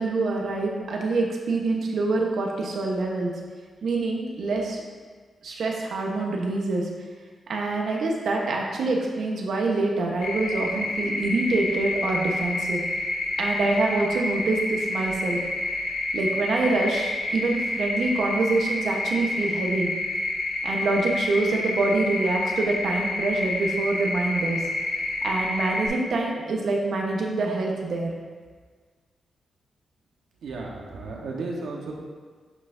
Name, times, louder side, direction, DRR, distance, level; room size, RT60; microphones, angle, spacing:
voice 1, 0.0-3.3 3.8-4.8 5.4-6.9 7.5-12.8 13.4-15.4 16.1-19.9 20.6-24.6 25.2-28.1, right 2 dB, 65° right, 0 dB, 1.1 m, -25 dB
sound 1, 10.2-25.9, left 2 dB, 80° left, 1.4 m, -29 dB
voice 2, 30.4-31.9, right 3 dB, 85° right, -1 dB, 1.2 m, -34 dB
9.6 x 5.7 x 2.7 m, 1.5 s
wide cardioid pair, 130°, 0 cm